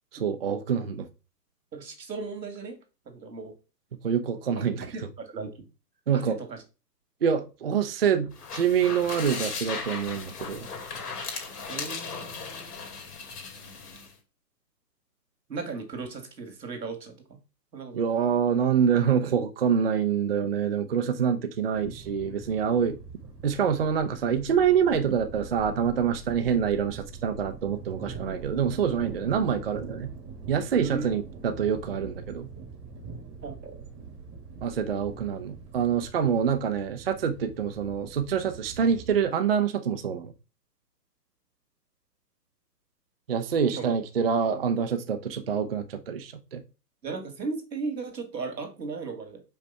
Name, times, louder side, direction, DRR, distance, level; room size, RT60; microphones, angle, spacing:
voice 1, 0.1-1.1 4.0-5.1 6.1-6.4 7.2-10.7 17.9-23.0 23.4-30.1 30.5-32.5 34.6-40.3 43.3-46.6, right 7 dB, 40° right, 0.5 m, -26 dB
voice 2, 1.7-2.8 3.1-3.5 4.8-5.5 6.1-6.2 6.5-6.6 11.7-12.9 15.5-17.2 17.7-18.0 30.8-31.1 33.4-33.8 43.7-43.9 47.0-49.4, right 4 dB, 90° right, 2.2 m, -36 dB
sound 1, 8.3-14.1, left 5 dB, 65° left, 2.5 m, -37 dB
sound 2, 21.7-39.3, right 5 dB, 20° right, 1.1 m, -43 dB
5.3 x 3.4 x 5.5 m
hypercardioid pair, 155°, 49 cm